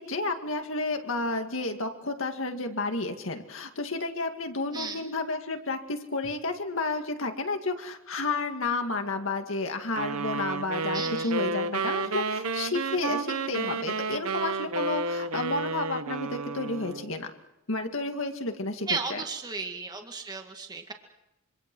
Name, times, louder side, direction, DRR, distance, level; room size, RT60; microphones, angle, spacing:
voice 1, 0.0-17.3 17.7-19.2, left 3 dB, 65° left, 5 dB, 2.2 m, -31 dB
voice 2, 4.7-5.1 10.9-11.3 18.9-20.9, right 4 dB, 20° right, 4 dB, 2.0 m, -34 dB
sound 1, 10.0-17.1, right 3 dB, 90° right, 1.2 m, -31 dB
26.5 x 25.0 x 6.3 m, 0.89 s
head